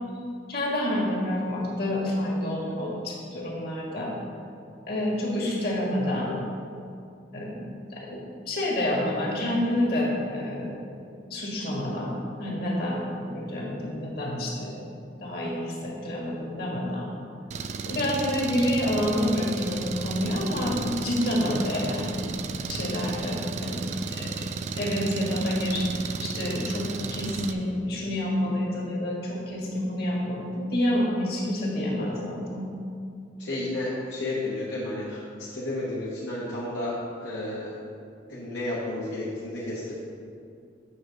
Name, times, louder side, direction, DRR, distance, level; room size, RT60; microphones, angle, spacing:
voice 1, 0.5-4.1 4.9-6.3 7.3-7.5 7.9-8.2 8.5-11.0 11.3-14.8 15.2-17.1 17.9-22.3 22.7-23.9 24.1-24.3 24.8-32.6, left 1 dB, 55° left, -4 dB, 1.7 m, -28 dB
Engine, 17.5-27.5, right 4 dB, 40° right, 0.3 m, -33 dB
voice 2, 33.4-37.7 38.3-39.9, left 1 dB, 75° left, -7 dB, 1.2 m, -32 dB
7.8 x 3.9 x 6.4 m, 2.4 s
head